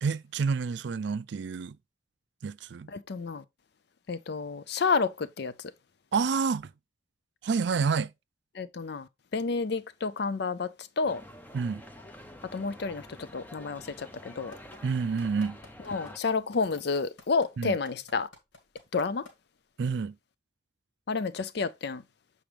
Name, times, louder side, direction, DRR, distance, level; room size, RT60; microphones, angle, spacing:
voice 1, 0.0-1.8 2.4-2.9 6.1-6.7 7.4-8.1 11.5-11.8 14.8-15.6 17.6-17.7 19.8-20.1, right 5 dB, 60° right, 0.4 m, -28 dB
voice 2, 2.9-3.4 4.1-5.5 8.5-11.2 12.5-14.5 15.9-18.3 18.9-19.3 21.1-22.0, left 4 dB, 55° left, 0.5 m, -30 dB
sound 1, 11.0-16.2, left 1 dB, 10° left, 0.7 m, -48 dB
sound 2, 14.5-19.3 19.8-19.9, left 2 dB, 80° left, 2.3 m, -50 dB
7.4 x 4.9 x 3.3 m
head